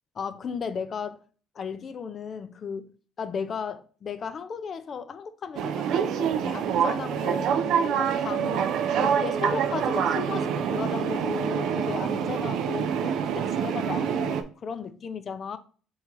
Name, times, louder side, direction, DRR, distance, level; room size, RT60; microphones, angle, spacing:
voice 1, 0.2-1.2 1.6-2.9 3.2-8.7 9.0-15.6, left 6 dB, 35° left, 0.4 m, -35 dB
sound 1, 5.6-14.4, right 8 dB, 60° right, 0.4 m, -26 dB
3.6 x 3.0 x 4.5 m
cardioid pair, 145°, 0 cm